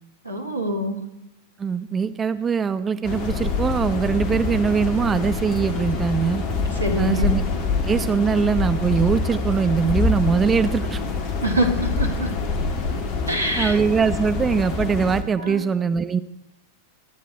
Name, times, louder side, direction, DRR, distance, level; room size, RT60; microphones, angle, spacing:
voice 1, 0.2-1.0 6.7-7.3 11.4-12.3 13.3-13.8 15.4-15.6, equal, 80° right, 5 dB, 2.8 m, -25 dB
voice 2, 1.6-6.4 7.0-7.4 7.8-11.0 13.6-16.2, right 6 dB, 20° right, 11 dB, 0.8 m, -22 dB
sound 1, 3.0-15.2, left 4 dB, 40° left, 2.6 m, -25 dB
25.5 x 10.5 x 4.6 m, 0.86 s
figure-of-eight pair, 90°, 0 cm